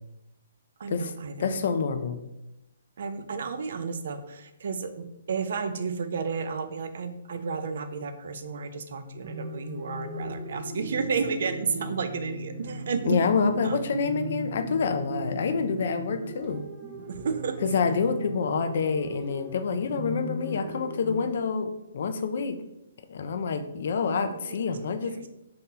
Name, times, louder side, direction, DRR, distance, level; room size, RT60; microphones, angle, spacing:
voice 1, 0.8-1.6 3.0-13.8 17.1-17.6 24.3-25.3, right 5 dB, 65° right, 9 dB, 0.4 m, -32 dB
voice 2, 1.4-2.2 13.1-16.6 17.6-22.6 23.1-25.3, left 5 dB, 60° left, 8 dB, 0.4 m, -27 dB
sound 1, 9.2-21.2, right 2 dB, 20° right, 0.6 m, -38 dB
2.7 x 2.7 x 3.8 m, 0.92 s
hypercardioid pair, 145°, 0 cm